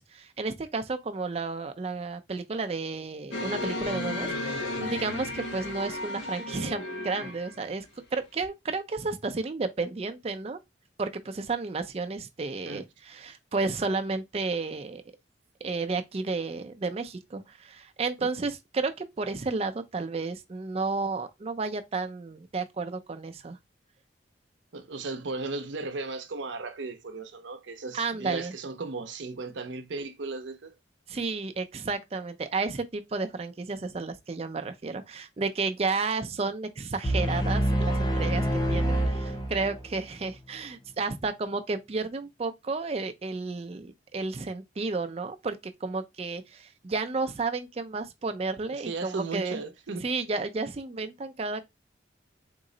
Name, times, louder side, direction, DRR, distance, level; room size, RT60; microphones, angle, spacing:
voice 1, 0.0-7.9 8.1-10.6 11.0-15.0 15.6-23.6 27.9-28.5 31.1-49.6 50.0-51.6, right 3 dB, 35° right, 0.4 m, -32 dB
sound 1, 3.3-7.6 8.4-8.5, left 2 dB, 75° left, 0.7 m, -34 dB
voice 2, 24.7-30.8 48.7-50.1, right 3 dB, 80° right, 0.6 m, -36 dB
sound 2, 37.0-40.0, equal, 20° left, 0.5 m, -26 dB
3.7 x 2.0 x 3.8 m
head